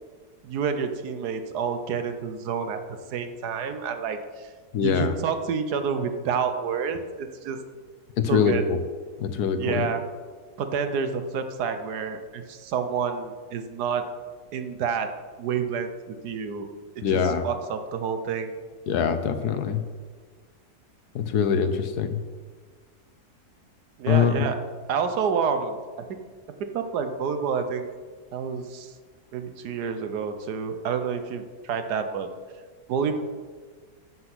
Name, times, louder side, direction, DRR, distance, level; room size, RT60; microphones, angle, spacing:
voice 1, 0.4-4.5 4.8-7.6 8.3-8.6 9.6-10.0 10.6-14.1 14.5-16.7 17.0-18.5 24.0-24.6 24.9-25.8 26.1-26.2 26.7-27.9 28.3-28.9 29.3-32.3 32.9-33.2, right 6 dB, 90° right, 8 dB, 1.4 m, -29 dB
voice 2, 4.7-5.1 8.2-8.5 9.2-9.9 17.0-17.4 18.9-19.8 21.1-22.2 24.1-24.5, left 7 dB, 80° left, 9 dB, 1.4 m, -23 dB
9.6 x 7.8 x 6.1 m, 1.5 s
omnidirectional pair, 1.7 m